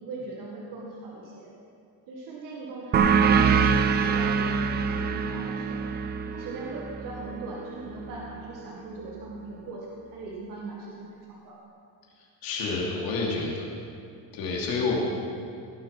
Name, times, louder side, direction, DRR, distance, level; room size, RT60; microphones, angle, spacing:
voice 1, 0.0-1.5 2.1-3.7 4.0-5.8 6.3-11.6, right 3 dB, 55° right, -3 dB, 2.0 m, -39 dB
sound 1, 2.9-8.1, right 6 dB, 25° right, 0.4 m, -24 dB
voice 2, 12.4-13.7 14.3-15.0, left 4 dB, 60° left, -2 dB, 3.1 m, -28 dB
17.0 x 7.6 x 6.0 m, 2.5 s
cardioid pair, 170°, 39 cm